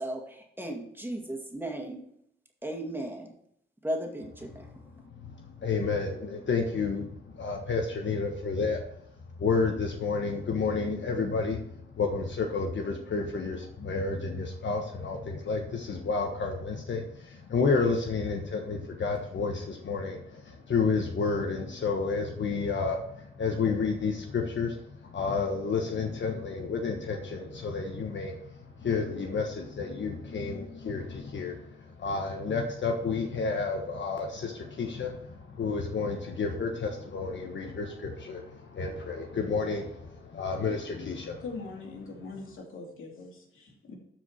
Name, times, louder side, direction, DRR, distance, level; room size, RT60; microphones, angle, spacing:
voice 1, 0.0-2.0 2.6-3.3 3.8-4.7, right 1 dB, 10° right, 1 dB, 2.1 m, -35 dB
voice 2, 4.9-9.0 9.4-41.4, left 4 dB, 65° left, 2 dB, 1.3 m, -31 dB
voice 3, 41.4-44.0, left 3 dB, 80° left, 0 dB, 2.7 m, -42 dB
13.5 x 5.0 x 4.5 m, 0.74 s
cardioid pair, 80°, 21 cm